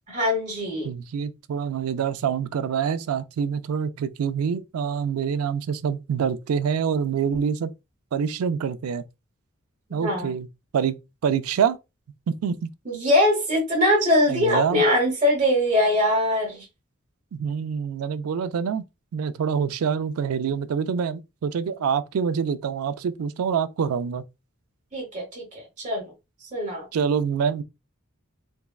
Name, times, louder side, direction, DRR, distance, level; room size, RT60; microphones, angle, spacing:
voice 1, 0.1-0.9 9.9-10.3 12.8-16.7 24.9-26.1 26.5-26.9, left 1 dB, 35° right, 0.9 m, -22 dB
voice 2, 0.8-7.7 8.1-9.0 9.9-10.5 10.7-11.0 11.2-11.8 12.3-12.7 14.3-14.8 17.3-18.8 19.1-24.2 26.9-27.6, right 7 dB, 90° right, 0.4 m, -26 dB
3.4 x 2.1 x 2.3 m
head